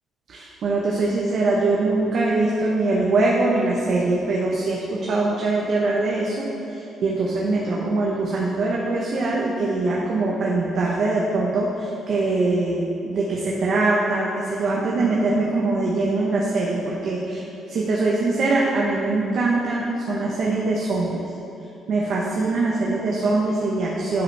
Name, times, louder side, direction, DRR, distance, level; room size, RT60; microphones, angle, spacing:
voice 1, 0.3-21.2 21.9-24.2, right 2 dB, 65° right, -4 dB, 0.8 m, -23 dB
9.3 x 5.0 x 3.3 m, 2.8 s
cardioid pair, 90°, 0 cm